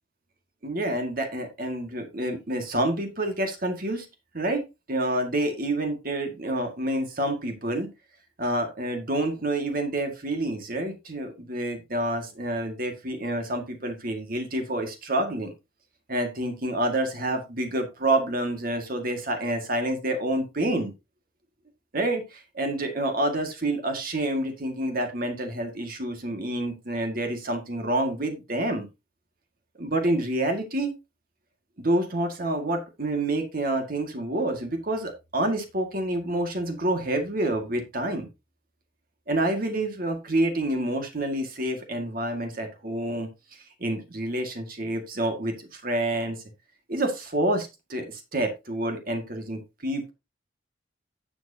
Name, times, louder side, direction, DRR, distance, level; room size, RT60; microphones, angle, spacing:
voice 1, 0.6-4.1 4.3-7.9 8.4-15.5 16.1-20.9 21.9-28.9 29.8-30.9 31.8-38.3 39.3-46.4 46.9-50.1, right 1 dB, 50° right, 5 dB, 1.9 m, -28 dB
11.0 x 7.6 x 2.8 m, 0.25 s
head